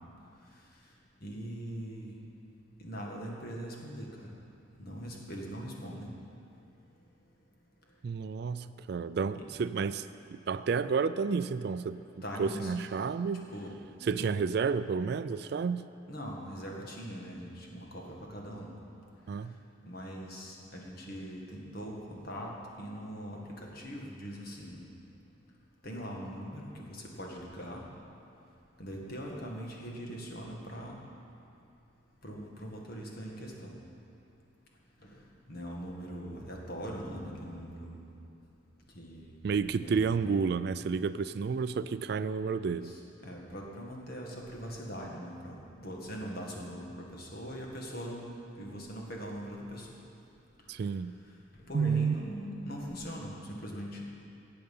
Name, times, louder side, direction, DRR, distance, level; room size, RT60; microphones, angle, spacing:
voice 1, 1.2-2.2 2.8-4.3 4.8-6.1 9.3-9.5 12.2-14.3 16.1-18.7 19.8-22.5 22.8-24.8 25.8-27.8 28.8-31.0 32.2-33.7 35.1-35.2 35.5-38.0 39.0-39.3 39.7-40.4 42.6-48.2 48.6-49.9 51.5-54.0, equal, 50° left, -1 dB, 1.8 m, -41 dB
voice 2, 8.0-10.0 10.3-12.0 12.4-13.5 14.1-15.9 19.3-19.6 39.4-42.9 50.7-51.1 51.7-52.2, right 5 dB, 55° right, 13 dB, 0.3 m, -31 dB
18.0 x 7.8 x 5.5 m, 2.7 s
head